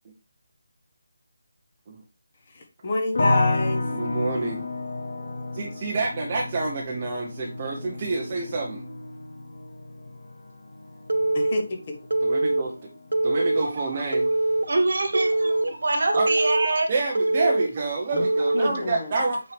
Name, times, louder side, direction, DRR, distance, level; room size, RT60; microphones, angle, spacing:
voice 1, 2.5-3.8 11.3-11.6 11.9-12.0 18.1-18.2 18.5-19.1, left 3 dB, 25° left, 3 dB, 1.2 m, -28 dB
sound 1, 3.1-14.2 14.5-15.2, left 2 dB, 60° left, 1.3 m, -31 dB
voice 2, 3.9-4.6 5.5-8.8 12.2-12.8 13.2-14.3 16.1-16.3 16.9-19.4, right 3 dB, 20° right, -2 dB, 0.9 m, -28 dB
Telephone, 11.1-11.6 12.1-12.6 13.1-13.6 14.1-14.6 15.1-15.6 16.1-16.7 17.1-17.7 18.2-18.7, right 2 dB, 70° right, 0.8 m, -23 dB
voice 3, 14.7-16.9, right 2 dB, 50° right, 6 dB, 1.5 m, -24 dB
8.6 x 4.5 x 3.4 m, 0.29 s
figure-of-eight pair, 180°, 0 cm